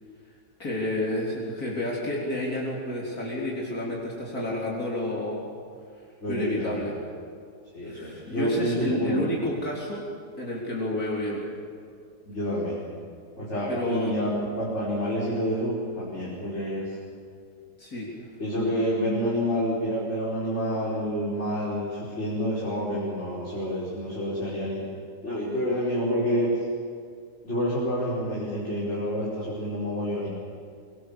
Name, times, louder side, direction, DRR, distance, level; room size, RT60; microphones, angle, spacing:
voice 1, 0.6-5.5 6.3-6.9 7.9-10.0 10.4-11.4 13.7-14.1 17.8-18.1, left 1 dB, 65° left, -4 dB, 4.2 m, -30 dB
voice 2, 6.2-6.9 7.7-9.4 12.2-12.8 13.4-16.9 18.4-24.8 25.2-26.6 27.4-30.3, equal, 40° left, -7 dB, 5.0 m, -28 dB
24.5 x 24.0 x 7.1 m, 2.3 s
omnidirectional pair, 1.7 m